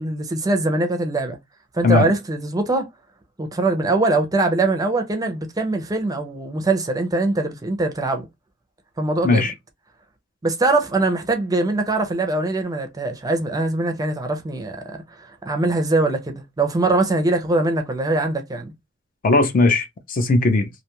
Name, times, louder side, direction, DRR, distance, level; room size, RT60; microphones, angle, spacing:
voice 1, 0.0-1.4 1.7-2.9 3.4-8.3 9.0-9.5 10.4-18.7, right 2 dB, 20° right, 0.5 m, -22 dB
voice 2, 19.2-20.7, left 3 dB, 45° left, 0.4 m, -18 dB
2.5 x 2.2 x 2.9 m
head